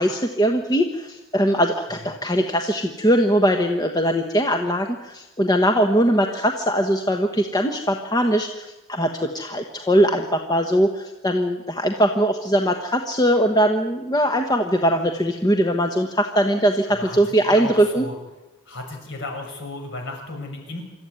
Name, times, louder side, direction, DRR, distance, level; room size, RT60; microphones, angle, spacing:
voice 1, 0.0-18.0, equal, 20° left, 4 dB, 1.2 m, -21 dB
voice 2, 16.8-18.2 18.7-20.8, left 2 dB, 55° left, 2 dB, 6.5 m, -34 dB
26.5 x 13.5 x 9.6 m, 1.1 s
head